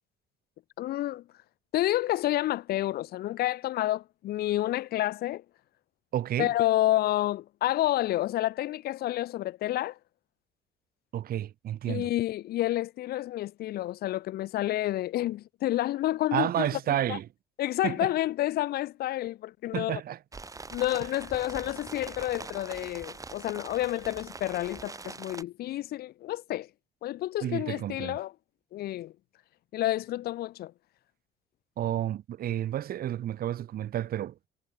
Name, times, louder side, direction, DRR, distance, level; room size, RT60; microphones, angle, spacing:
voice 1, 0.8-1.2 1.7-5.4 6.4-10.0 11.9-16.7 17.1-17.2 17.6-20.0 20.7-26.7 27.0-28.3 28.7-29.1 29.7-30.7, left 14 dB, 70° left, 1.0 m, -29 dB
voice 2, 6.1-6.5 11.1-12.1 16.3-17.3 17.8-18.1 19.7-20.2 27.4-28.2 31.8-34.4, right 11 dB, 60° right, 5.3 m, -31 dB
sound 1, 20.3-25.4, right 3 dB, 20° right, 3.5 m, -43 dB
cardioid pair, 110°, 17 cm